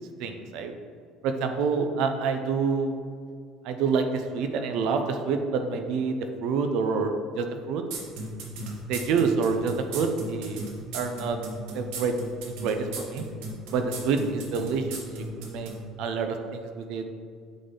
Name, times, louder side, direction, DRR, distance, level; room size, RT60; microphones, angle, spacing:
voice 1, 0.2-0.7 1.2-3.0 3.6-6.2 6.4-7.8 8.9-10.7 10.9-11.4 11.7-12.1 12.6-13.2 13.7-15.7 16.0-17.1, right 5 dB, 60° right, 6 dB, 0.6 m, -27 dB
sound 1, 7.9-15.8, right 2 dB, 90° right, 1.3 m, -36 dB
8.2 x 4.1 x 3.8 m, 2.1 s
cardioid pair, 170°, 0 cm